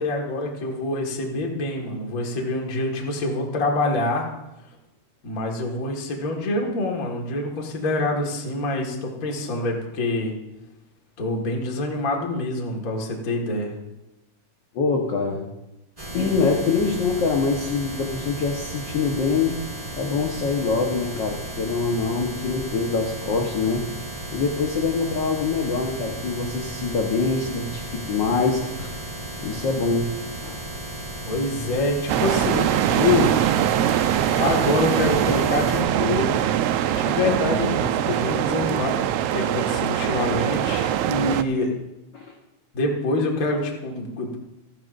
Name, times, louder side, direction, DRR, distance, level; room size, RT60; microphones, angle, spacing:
voice 1, 0.0-4.3 5.2-10.3 11.2-13.7 31.3-33.3 33.9-36.5 36.9-39.0 39.3-41.7 42.7-44.4, left 2 dB, 35° left, 0 dB, 1.9 m, -26 dB
voice 2, 14.7-15.5 16.1-19.6 19.9-23.8 24.3-29.0 29.4-30.1 30.4-30.6 42.1-42.3, left 4 dB, 50° left, 1 dB, 1.5 m, -24 dB
sound 1, 16.0-35.8, right 1 dB, 10° right, 3.4 m, -35 dB
sound 2, 32.1-41.4, right 11 dB, 80° right, 1.5 m, -22 dB
28.5 x 10.5 x 2.6 m, 0.95 s
omnidirectional pair, 3.4 m